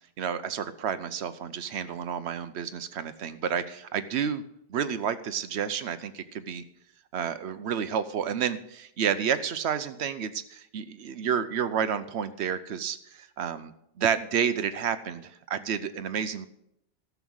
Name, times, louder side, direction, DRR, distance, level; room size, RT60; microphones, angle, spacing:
voice 1, 0.2-4.4 4.7-6.6 7.1-16.5, right 8 dB, 70° right, 12 dB, 1.0 m, -30 dB
13.0 x 7.1 x 6.3 m, 0.78 s
omnidirectional pair, 1.2 m